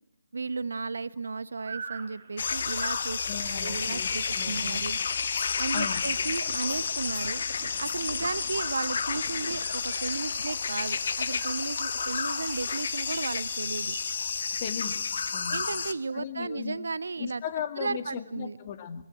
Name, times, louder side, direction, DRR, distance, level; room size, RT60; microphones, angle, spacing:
voice 1, 0.3-3.2 3.5-5.0 5.6-7.4 7.8-13.9 15.5-17.4 17.8-18.6, right 4 dB, 65° right, 19 dB, 0.7 m, -34 dB
sound 1, 1.6-15.9, right 6 dB, 45° right, 2.0 m, -49 dB
sound 2, 2.4-15.9, left 6 dB, 55° left, 1.2 m, -31 dB
voice 2, 3.2-4.8 5.7-6.0 14.6-15.1 15.3-15.7 16.1-16.8 17.2-19.0, left 8 dB, 35° left, 10 dB, 1.8 m, -37 dB
20.5 x 16.0 x 9.1 m, 0.91 s
figure-of-eight pair, 140°, 0 cm